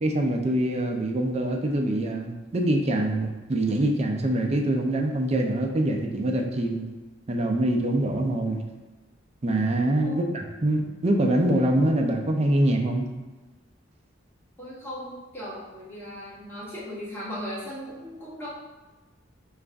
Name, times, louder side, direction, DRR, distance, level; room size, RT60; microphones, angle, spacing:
voice 1, 0.0-6.9 7.3-8.6 9.4-13.1, right 1 dB, 30° right, 2 dB, 0.4 m, -24 dB
voice 2, 14.6-18.5, equal, 10° left, -9 dB, 1.1 m, -37 dB
5.0 x 2.4 x 3.3 m, 1.2 s
head